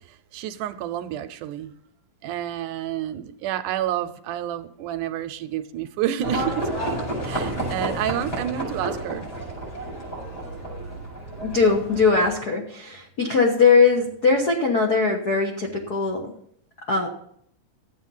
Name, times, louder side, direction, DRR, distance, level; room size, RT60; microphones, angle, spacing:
voice 1, 0.1-1.7 2.2-6.7 7.2-9.3, right 11 dB, 80° right, 10 dB, 2.0 m, -29 dB
Livestock farm animals working animals, 6.2-12.3, right 1 dB, 25° left, 5.3 m, -30 dB
voice 2, 11.4-16.3 16.9-17.1, left 4 dB, 85° left, 1 dB, 0.8 m, -20 dB
12.5 x 8.3 x 5.5 m, 0.68 s
omnidirectional pair, 3.9 m